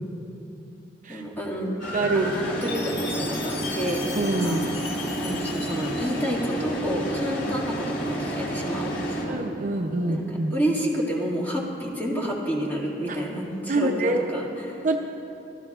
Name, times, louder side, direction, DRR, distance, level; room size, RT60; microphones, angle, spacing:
voice 1, 1.1-1.8 2.1-4.8 5.2-9.4 10.0-14.9, equal, 10° left, -4 dB, 2.2 m, -29 dB
sound 1, 1.8-9.2, right 1 dB, 90° left, 2.8 m, -30 dB
voice 2, 1.9-2.3 4.2-4.6 9.3-10.5 13.7-14.2 14.8-15.0, right 2 dB, 45° right, 3 dB, 0.6 m, -25 dB
Chime, 2.6-6.7, left 4 dB, 70° left, 1.7 m, -38 dB
26.5 x 12.5 x 2.4 m, 2.8 s
head